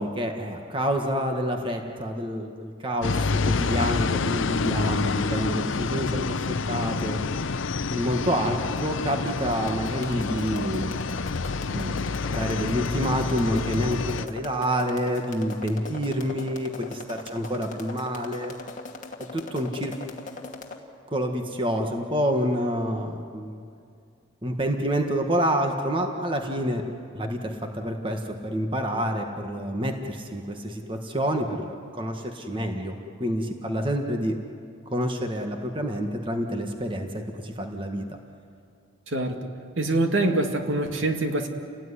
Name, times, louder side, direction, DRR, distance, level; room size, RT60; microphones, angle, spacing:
voice 1, 0.0-7.2 7.9-10.9 11.7-12.0 12.3-18.5 19.2-19.9 21.1-23.6 24.4-26.8 27.1-34.4 34.9-38.0, equal, 25° right, 4 dB, 1.7 m, -28 dB
sound 1, 3.0-14.3, left 4 dB, 75° left, 0.6 m, -28 dB
sound 2, 9.5-20.8, left 3 dB, 40° left, 2.2 m, -40 dB
voice 2, 39.1-39.5 39.8-41.5, right 2 dB, 75° right, 4 dB, 2.3 m, -25 dB
29.5 x 18.5 x 10.0 m, 2.4 s
head